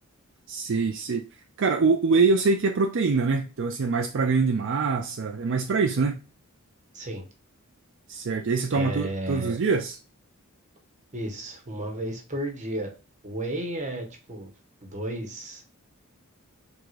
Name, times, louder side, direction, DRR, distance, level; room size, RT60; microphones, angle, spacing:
voice 1, 0.5-1.2 1.6-6.2 8.1-10.0, right 4 dB, 60° right, 0.5 m, -24 dB
voice 2, 8.7-9.6 11.1-12.9 13.2-14.5 14.8-15.6, right 1 dB, 35° right, 1.2 m, -33 dB
4.8 x 3.7 x 2.5 m
head